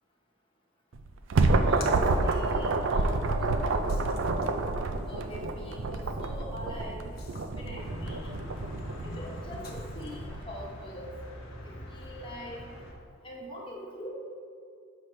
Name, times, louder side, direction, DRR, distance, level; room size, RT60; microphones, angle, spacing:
sound 1, 0.9-10.4, right 3 dB, 65° right, 0.4 m, -28 dB
Splash splatter, 1.4-10.3, left 1 dB, 45° left, 0.8 m, -46 dB
voice 1, 1.6-4.5 5.1-7.1 7.5-8.5 9.0-11.1 11.6-12.6 13.2-14.1, equal, 25° left, -3 dB, 1.1 m, -43 dB
sound 2, 7.8-12.9, left 1 dB, 65° left, 1.2 m, -43 dB
7.5 x 3.2 x 5.4 m, 2.3 s
head